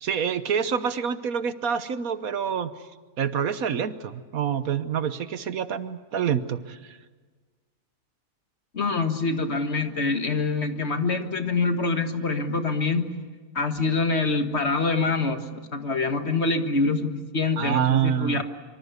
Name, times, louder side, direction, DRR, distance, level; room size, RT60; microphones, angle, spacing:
voice 1, 0.0-2.7 3.2-7.0 17.6-18.4, right 8 dB, 85° right, 12 dB, 1.5 m, -27 dB
voice 2, 8.7-13.1 13.6-18.4, left 3 dB, 50° left, 7 dB, 1.9 m, -25 dB
25.5 x 24.5 x 8.2 m, 1.4 s
omnidirectional pair, 1.4 m